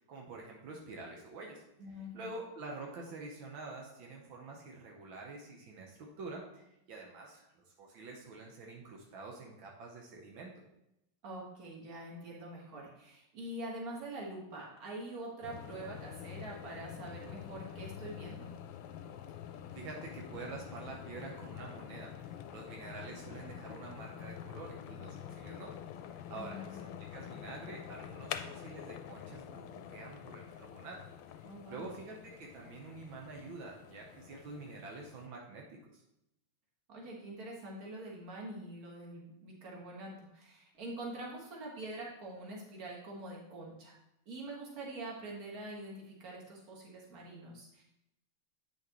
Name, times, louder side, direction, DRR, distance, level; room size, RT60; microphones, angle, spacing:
voice 1, 0.1-1.6 2.1-10.6 19.7-25.7 26.0-31.0 31.7-36.0, right 3 dB, 80° right, 0 dB, 1.7 m, -47 dB
voice 2, 1.8-2.3 11.2-18.5 26.3-26.9 31.4-31.9 36.9-44.0 44.3-47.8, right 1 dB, 50° right, -2 dB, 1.9 m, -45 dB
sound 1, 15.4-35.3, left 9 dB, 75° left, 1.3 m, -47 dB
8.4 x 5.9 x 3.0 m, 0.84 s
omnidirectional pair, 2.2 m